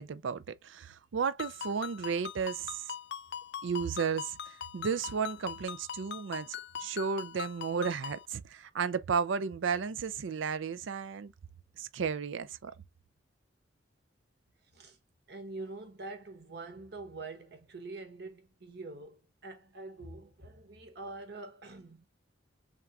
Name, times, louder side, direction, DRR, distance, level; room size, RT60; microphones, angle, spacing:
voice 1, 0.0-2.8 3.6-11.3 11.8-12.7, right 6 dB, 75° right, 0.4 m, -33 dB
Ringtone, 1.4-8.3, left 8 dB, 55° left, 0.3 m, -42 dB
voice 2, 14.6-15.0 15.3-22.1, right 3 dB, 55° right, 1.1 m, -45 dB
3.6 x 3.5 x 2.7 m
head